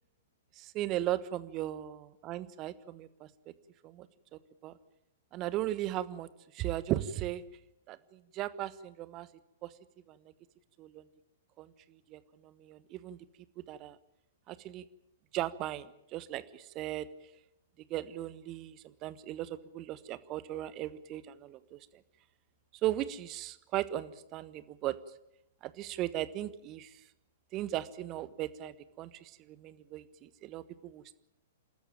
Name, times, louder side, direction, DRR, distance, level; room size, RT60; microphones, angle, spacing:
voice 1, 0.6-3.3 3.8-4.1 4.3-4.7 5.3-6.3 6.5-7.4 7.9-9.3 9.6-9.7 10.1-10.2 10.8-11.0 11.6-13.2 13.6-14.0 14.5-14.8 15.3-17.1 17.9-21.8 22.8-24.9 25.6-27.0 27.5-31.1, right 13 dB, 30° right, 15 dB, 1.2 m, -37 dB
29.0 x 13.5 x 8.9 m, 0.86 s
figure-of-eight pair, 110°, 0 cm